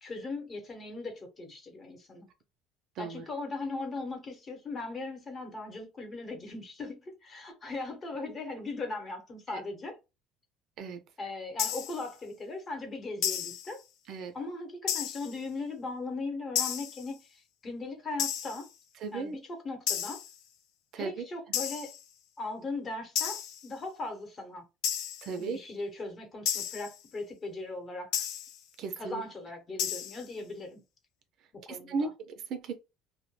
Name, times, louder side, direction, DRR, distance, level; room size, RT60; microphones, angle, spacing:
voice 1, 0.0-2.3 3.0-10.0 11.2-13.8 14.3-18.7 19.1-20.2 21.0-21.9 22.4-24.6 25.3-28.3 29.0-30.8 31.5-32.1, left 3 dB, 30° left, 0.9 m, -39 dB
sound 1, 11.6-12.1 13.2-13.7 14.9-15.4 16.6-17.1 18.2-18.7 19.9-20.3 21.5-22.0 23.2-23.7 24.8-25.3 26.5-27.0 28.1-28.6 29.8-30.3, left 9 dB, 70° left, 0.5 m, -32 dB
voice 2, 19.0-19.4 20.9-21.2 25.2-25.6 28.8-29.2 31.7-32.8, right 4 dB, 55° right, 0.5 m, -36 dB
2.2 x 2.1 x 3.1 m
cardioid pair, 130°, 0 cm